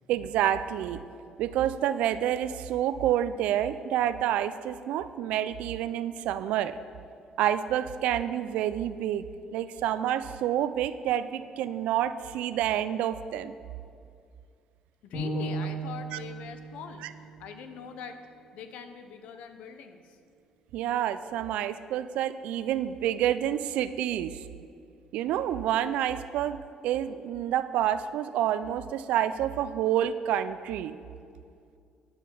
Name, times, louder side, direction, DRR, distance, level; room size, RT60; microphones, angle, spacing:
voice 1, 0.1-1.0 1.4-6.8 7.4-13.5 16.1-16.2 17.0-17.1 20.7-24.4 25.1-31.0, right 11 dB, 85° right, 13 dB, 0.3 m, -28 dB
voice 2, 15.0-18.2 18.5-20.2, left 6 dB, 85° left, 8 dB, 0.7 m, -43 dB
sound 1, 15.1-19.3, right 2 dB, 55° left, 2.3 m, -37 dB
8.8 x 4.7 x 6.9 m, 2.4 s
cardioid pair, 130°, 2 cm